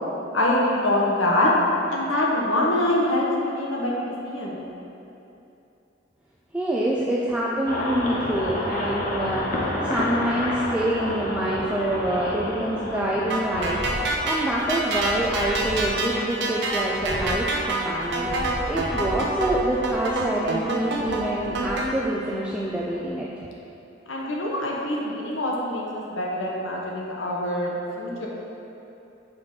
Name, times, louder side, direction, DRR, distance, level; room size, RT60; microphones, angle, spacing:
voice 1, 0.3-1.5 1.9-4.6 24.1-28.3, left 1 dB, 90° left, -3 dB, 1.1 m, -24 dB
voice 2, 6.5-13.9 14.2-23.3, right 1 dB, 5° right, -6 dB, 0.4 m, -26 dB
sound 1, 7.7-23.0, left 1 dB, 45° left, 0.8 m, -32 dB
sound 2, 13.3-21.9, right 2 dB, 65° right, 0.8 m, -27 dB
6.0 x 4.2 x 5.0 m, 2.8 s
head